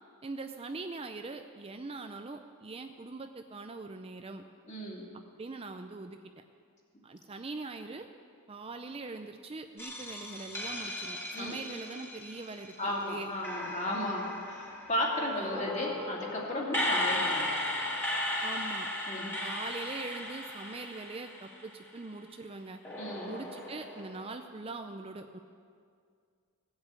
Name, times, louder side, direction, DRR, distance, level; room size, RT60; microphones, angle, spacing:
voice 1, 0.2-4.4 5.4-6.4 7.0-8.1 8.5-13.3 15.3-15.7 18.4-18.9 19.4-22.8 23.3-25.4, right 3 dB, 25° right, 6 dB, 0.5 m, -42 dB
voice 2, 4.7-5.1 11.3-11.5 12.8-17.5 19.1-19.3 23.0-23.3, left 1 dB, 35° left, -3 dB, 2.7 m, -34 dB
sound 1, 9.8-13.0 13.4-21.8 22.8-24.3, left 1 dB, 10° left, 2.0 m, -36 dB
17.0 x 8.0 x 8.2 m, 2.2 s
head